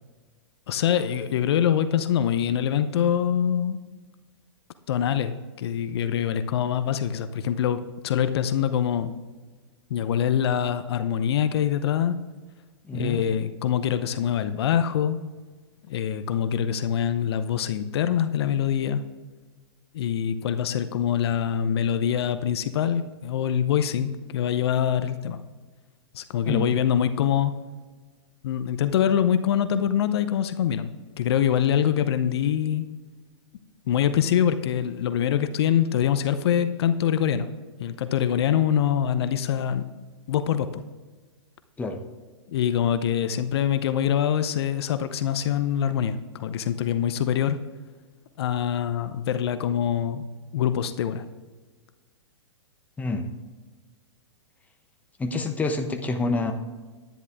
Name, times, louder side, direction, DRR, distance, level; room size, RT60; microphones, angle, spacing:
voice 1, 0.7-3.8 4.9-9.1 9.9-12.2 12.9-15.2 15.9-19.0 19.9-25.4 26.1-27.5 28.4-30.9 31.2-32.9 33.9-37.5 37.8-39.8 40.3-40.8 42.5-47.6 48.4-50.2 50.5-51.2, left 9 dB, 60° left, 12 dB, 0.7 m, -24 dB
voice 2, 12.9-13.2 26.5-26.7 41.8-42.0 53.0-53.3 55.2-56.5, left 3 dB, 10° left, 5 dB, 1.0 m, -27 dB
10.5 x 10.0 x 3.5 m, 1.3 s
hypercardioid pair, 120°, 15 cm